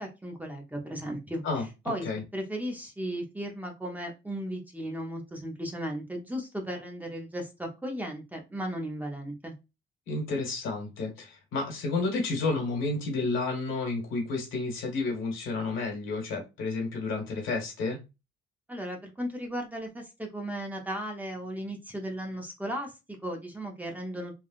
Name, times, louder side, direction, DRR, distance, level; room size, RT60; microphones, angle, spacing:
voice 1, 0.0-1.4 1.9-9.5 18.7-22.9 23.2-24.3, equal, 10° right, 0.8 m, -36 dB
voice 2, 10.1-18.0, left 3 dB, 80° left, 1.4 m, -31 dB
3.4 x 2.3 x 2.4 m
cardioid pair, 90°, 20 cm